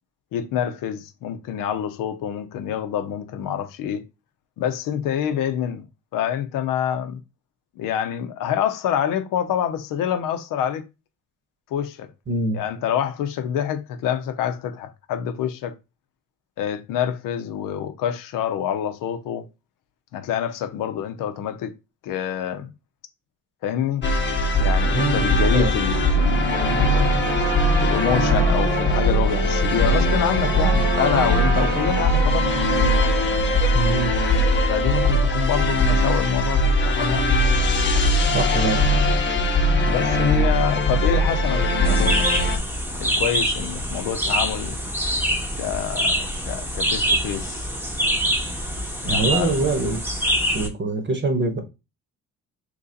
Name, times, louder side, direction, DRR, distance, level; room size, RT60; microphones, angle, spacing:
voice 1, 0.3-4.0 4.6-5.8 6.1-7.2 7.8-10.9 11.7-12.1 12.5-15.7 16.6-19.4 20.1-21.7 22.0-22.7 23.6-24.1 24.6-27.2 27.8-32.6 34.7-37.2 39.8-42.3 42.9-44.8 45.6-47.7 49.0-49.7, left 9 dB, 80° left, 0.6 m, -26 dB
voice 2, 12.3-12.6 24.9-25.7 33.7-34.1 38.3-38.9 49.0-50.0 50.5-51.6, right 3 dB, 35° right, 1.0 m, -24 dB
sound 1, 24.0-42.6, left 1 dB, 35° left, 0.8 m, -20 dB
sound 2, 25.6-33.6, right 5 dB, 80° right, 0.8 m, -29 dB
sound 3, 41.9-50.7, equal, 5° right, 0.8 m, -25 dB
3.0 x 2.7 x 3.8 m
cardioid pair, 100°, 32 cm